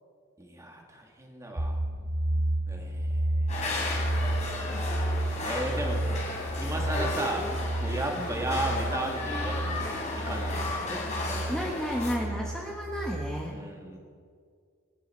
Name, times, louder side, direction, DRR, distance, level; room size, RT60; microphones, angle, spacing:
voice 1, 0.4-1.8 2.7-3.9 5.4-6.0 6.6-7.5 7.8-11.4 13.5-14.0, right 1 dB, 15° right, 1 dB, 2.1 m, -35 dB
sound 1, 1.6-13.4, right 1 dB, 35° right, 0.9 m, -32 dB
sound 2, 3.5-12.1, left 2 dB, 35° left, 3.6 m, -34 dB
voice 2, 11.5-13.5, equal, 5° left, -2 dB, 1.3 m, -33 dB
28.5 x 10.0 x 4.5 m, 2.1 s
head